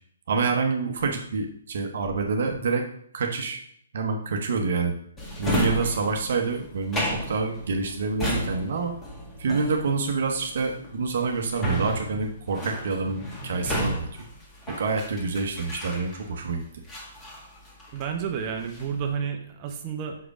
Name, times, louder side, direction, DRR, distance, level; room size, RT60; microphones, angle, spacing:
voice 1, 0.3-2.9 3.1-3.6 3.9-4.9 5.4-8.9 9.4-14.3 14.7-16.8, right 4 dB, 60° right, 3 dB, 0.9 m, -27 dB
Drawer open or close, 5.2-16.4 16.9-18.2 18.5-19.0, equal, 15° left, 1.8 m, -32 dB
voice 2, 17.9-20.2, right 7 dB, 35° right, 4 dB, 0.9 m, -30 dB
5.9 x 5.1 x 4.9 m, 0.66 s
figure-of-eight pair, 130°, 0 cm